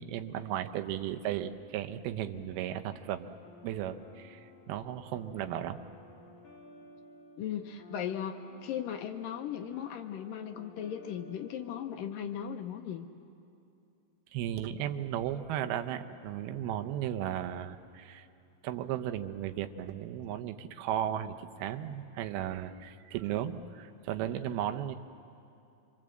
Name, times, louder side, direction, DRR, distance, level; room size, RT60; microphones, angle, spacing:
voice 1, 0.0-3.4 3.6-5.8 14.3-18.3 18.6-24.9, right 11 dB, 80° right, 7 dB, 2.7 m, -35 dB
sound 1, 3.4-12.1, left 2 dB, 50° left, 4.1 m, -55 dB
voice 2, 7.4-13.1, left 9 dB, 75° left, 6 dB, 2.1 m, -37 dB
26.0 x 24.5 x 7.8 m, 2.7 s
omnidirectional pair, 4.6 m